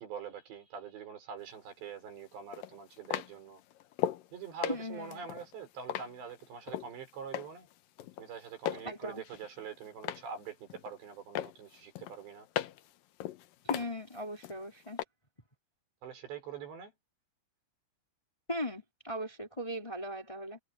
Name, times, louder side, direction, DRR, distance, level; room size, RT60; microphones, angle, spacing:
voice 1, 0.0-3.6 4.3-7.7 8.2-12.5 16.0-16.9, right 6 dB, 75° right, 7.3 m, -44 dB
sound 1, 1.5-1.6 2.5-4.3 4.6-6.9 7.3-7.7 8.0-8.9 9.2-10.3 10.7-11.1 11.4-12.9 13.2-14.6 15.0-15.1, left 12 dB, 75° left, 2.1 m, -37 dB
voice 2, 4.7-5.3 8.8-9.2 13.6-15.0 18.5-20.6, left 1 dB, 10° left, 3.3 m, -38 dB
omnidirectional pair, 5.1 m